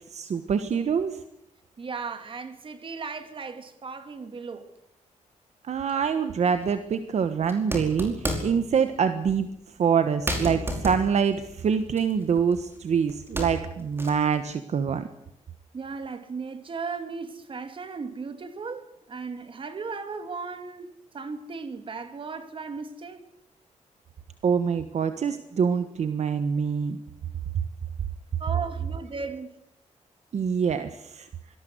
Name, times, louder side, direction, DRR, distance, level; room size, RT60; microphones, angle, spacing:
voice 1, 0.1-1.2 5.7-9.5 9.8-15.1 24.4-27.0 30.3-31.3, right 6 dB, 60° right, 1.4 m, -25 dB
voice 2, 1.8-4.7 15.7-23.2 28.4-29.6, right 4 dB, 40° right, 2.6 m, -36 dB
sound 1, 6.5-6.7 7.4-8.7 9.3-9.4 9.8-9.9 10.3-12.8 13.1-14.3, equal, 20° right, 5.1 m, -32 dB
25.5 x 19.0 x 8.0 m
wide cardioid pair, 150°, 13 cm